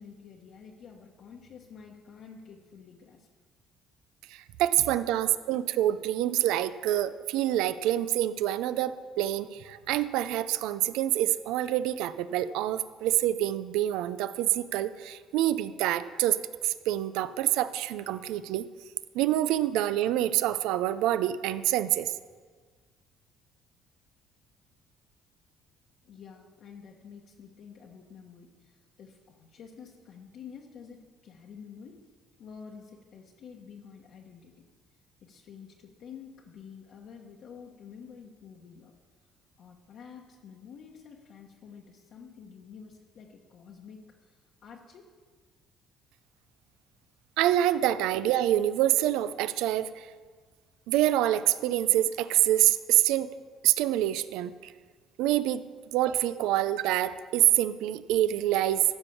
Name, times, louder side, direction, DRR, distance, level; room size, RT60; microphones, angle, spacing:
voice 1, 0.0-3.3 5.3-5.4 26.0-32.0 32.4-34.6 35.2-38.9 39.6-45.1, left 6 dB, 55° left, -1 dB, 1.1 m, -49 dB
voice 2, 4.3-16.4 16.6-18.6 19.1-22.1 47.4-50.1 50.9-53.3 53.6-54.7 55.2-55.6 55.9-58.8, right 13 dB, 90° right, 14 dB, 0.5 m, -26 dB
14.5 x 5.4 x 7.0 m, 1.5 s
cardioid pair, 130°, 0 cm